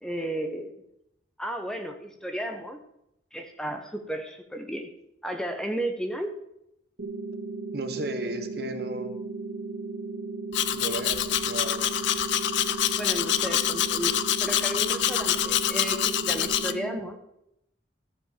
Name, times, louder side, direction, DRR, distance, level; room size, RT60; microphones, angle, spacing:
voice 1, 0.0-0.8 1.4-2.8 3.3-4.9 5.2-6.3 13.0-17.2, right 1 dB, 5° left, 5 dB, 0.9 m, -33 dB
sound 1, 7.0-17.0, right 3 dB, 80° right, 2.2 m, -36 dB
voice 2, 7.7-9.1 10.7-11.8, right 1 dB, 55° right, 7 dB, 1.3 m, -34 dB
Domestic sounds home sounds, 10.5-16.7, left 11 dB, 70° left, 0.6 m, -26 dB
14.0 x 5.2 x 7.3 m, 0.80 s
head